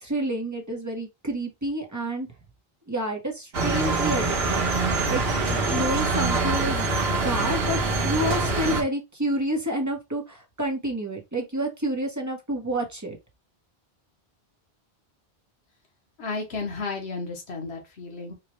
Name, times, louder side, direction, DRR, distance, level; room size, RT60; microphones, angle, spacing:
voice 1, 0.0-2.3 2.9-4.6 5.1-13.2, right 1 dB, 20° right, 0.9 m, -29 dB
Goldmine ambience., 3.5-8.8, right 3 dB, 75° right, 1.3 m, -24 dB
voice 2, 16.2-18.3, left 4 dB, 85° left, 1.3 m, -33 dB
4.7 x 2.2 x 3.0 m
omnidirectional pair, 1.1 m